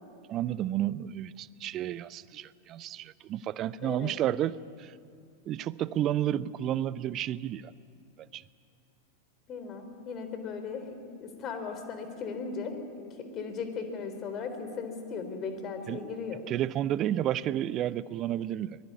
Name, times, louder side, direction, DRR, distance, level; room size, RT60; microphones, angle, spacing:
voice 1, 0.3-4.9 5.5-7.6 8.3-8.4 15.9-16.0 16.5-18.8, right 12 dB, 35° right, 19 dB, 0.7 m, -31 dB
voice 2, 3.8-4.1 9.5-16.4, left 5 dB, 30° left, 7 dB, 3.7 m, -37 dB
24.0 x 20.0 x 9.6 m, 2.3 s
figure-of-eight pair, 90°, 0 cm